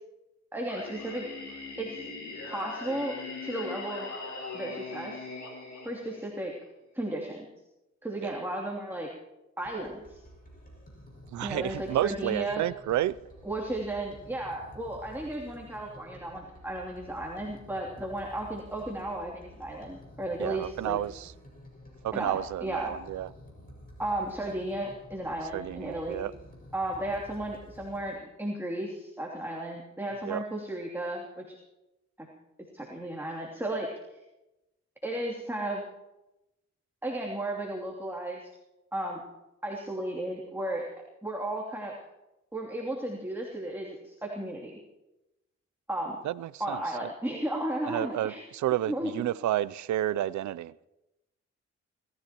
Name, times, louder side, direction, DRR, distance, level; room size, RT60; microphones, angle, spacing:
voice 1, 0.5-1.2 1.8-2.0 2.4-3.2 3.4-4.1 4.5-5.2 5.8-6.5 6.9-7.5 8.0-9.1 9.6-10.2 11.4-12.6 13.4-21.0 22.1-23.0 24.0-26.3 26.7-31.5 32.2-32.3 32.7-33.9 35.0-35.8 37.0-38.5 38.9-39.2 39.6-40.9 41.2-41.9 42.5-44.7 45.9-46.2 46.6-48.4 48.9-49.2, right 1 dB, 10° right, 3.0 m, -34 dB
Singing, 0.7-6.6, left 3 dB, 80° left, 6.3 m, -40 dB
sound 1, 9.6-28.1, equal, 30° left, 6.1 m, -51 dB
voice 2, 11.3-13.2 20.4-21.3 22.0-23.3 25.5-26.3 30.2-30.4 46.2-46.8 47.9-50.9, right 13 dB, 75° right, 0.5 m, -31 dB
29.0 x 14.5 x 3.0 m
cardioid pair, 60°, 29 cm